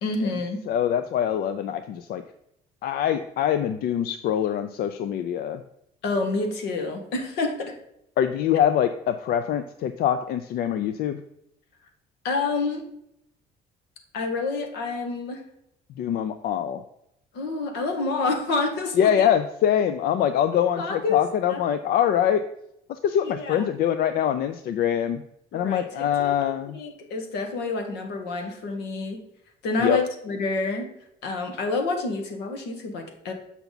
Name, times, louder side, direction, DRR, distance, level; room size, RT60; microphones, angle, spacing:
voice 1, 0.0-0.6 6.0-7.8 12.2-12.8 14.1-15.4 17.3-19.1 20.8-21.6 23.2-23.6 25.5-29.2 29.6-30.9 31.2-33.3, left 3 dB, 85° left, 4 dB, 1.5 m, -28 dB
voice 2, 0.7-2.2 2.8-5.6 8.2-11.2 15.9-16.8 18.9-22.4 22.9-25.2 25.5-26.8 29.8-30.0, left 9 dB, 65° left, 10 dB, 0.4 m, -24 dB
6.9 x 5.8 x 4.0 m, 0.79 s
cardioid pair, 110°, 17 cm